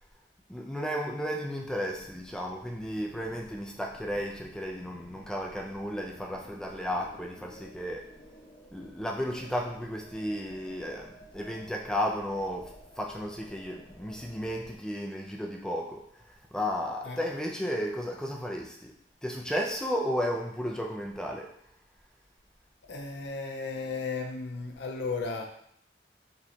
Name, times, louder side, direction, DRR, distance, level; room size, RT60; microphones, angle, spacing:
voice 1, 0.5-8.1 8.7-18.9 19.2-21.5, equal, 5° left, 0 dB, 0.5 m, -34 dB
sound 1, 1.9-14.8, equal, 50° left, 0.9 m, -53 dB
voice 2, 22.8-25.5, left 4 dB, 75° left, 2 dB, 0.5 m, -34 dB
5.2 x 3.1 x 2.8 m, 0.68 s
head